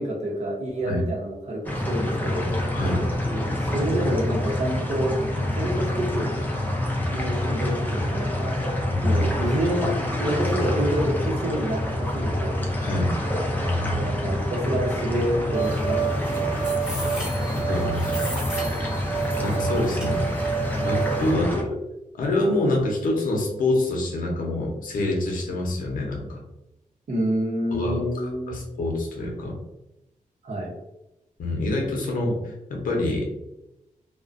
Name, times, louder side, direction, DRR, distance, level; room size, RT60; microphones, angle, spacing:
voice 1, 0.0-2.5 3.3-5.1 5.5-6.3 7.1-8.6 9.0-9.9 10.2-12.6 13.9-16.6 21.4-21.5 27.1-28.8 30.4-30.7, right 1 dB, 55° right, -1 dB, 0.7 m, -28 dB
sound 1, 1.6-21.6, left 1 dB, 15° left, 0.4 m, -27 dB
voice 2, 2.7-3.1 8.9-9.2 12.8-13.1 13.5-14.0 16.9-17.0 17.5-18.2 19.4-20.2 20.8-21.8 22.2-26.4 27.7-28.0 28.5-29.5 31.4-33.3, left 2 dB, 80° left, 0 dB, 0.6 m, -26 dB
sound 2, 15.5-21.3, right 6 dB, 5° right, 0.7 m, -29 dB
2.4 x 2.1 x 2.4 m, 0.90 s
wide cardioid pair, 165°, 14 cm